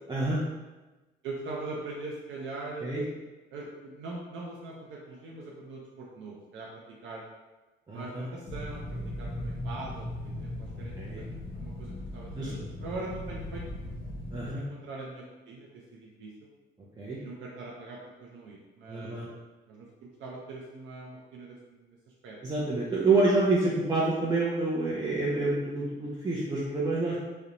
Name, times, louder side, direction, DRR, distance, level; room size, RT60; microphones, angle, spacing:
voice 1, 0.1-0.4 2.8-3.0 7.9-8.3 11.0-11.2 12.3-12.6 14.3-14.6 17.0-17.2 18.9-19.3 22.4-27.2, right 3 dB, 20° right, -6 dB, 0.4 m, -27 dB
voice 2, 1.2-2.9 3.5-7.2 7.9-12.5 12.8-13.6 14.5-16.5 17.2-19.2 19.7-22.0 22.2-22.4, right 2 dB, 80° right, -3 dB, 0.5 m, -42 dB
sound 1, 8.5-14.5, left 1 dB, 50° left, 0.6 m, -38 dB
2.5 x 2.1 x 2.8 m, 1.1 s
cardioid pair, 90°, 20 cm